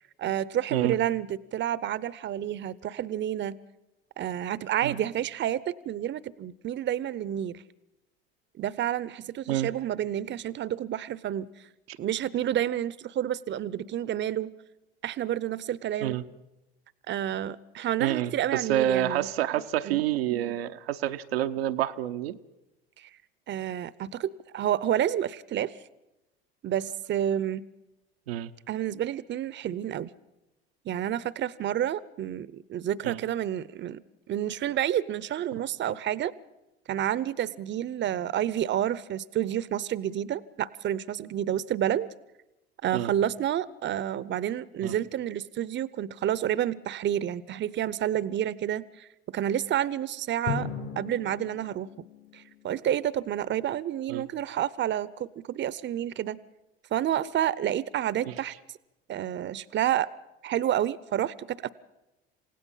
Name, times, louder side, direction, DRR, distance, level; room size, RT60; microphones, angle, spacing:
voice 1, 0.2-3.6 4.2-7.6 8.6-11.5 12.0-14.5 15.0-16.2 17.1-19.3 19.8-20.0 23.0-23.1 23.5-25.7 26.6-27.7 28.7-30.1 30.8-34.0 34.3-36.3 36.9-42.1 42.8-50.7 51.0-51.9 52.3-56.4 56.9-58.5 59.1-60.1 60.4-61.7, right 11 dB, 40° right, 19 dB, 0.7 m, -29 dB
voice 2, 18.0-22.4 28.3-28.5 33.0-33.2 42.9-43.1 44.8-44.9 54.1-54.2 58.3-58.4, right 12 dB, 85° right, 7 dB, 0.8 m, -28 dB
Drum, 50.5-53.2, left 7 dB, 65° left, 5.3 m, -37 dB
28.0 x 16.5 x 5.6 m, 0.96 s
hypercardioid pair, 70°, 30 cm